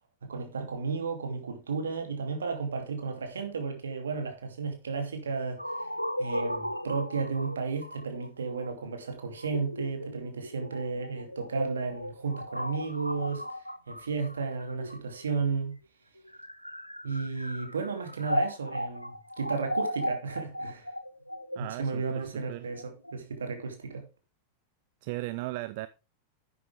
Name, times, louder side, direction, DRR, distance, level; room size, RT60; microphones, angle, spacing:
voice 1, 0.2-5.9 6.2-13.4 13.9-15.7 17.0-20.9 21.6-24.0, right 4 dB, 70° right, 2.7 m, -33 dB
sound 1, 5.6-15.4 16.2-23.1, equal, 90° left, 0.6 m, -36 dB
voice 2, 21.6-22.7 25.0-25.9, right 20 dB, 50° right, 0.5 m, -37 dB
11.0 x 8.2 x 3.4 m
figure-of-eight pair, 90°, 0 cm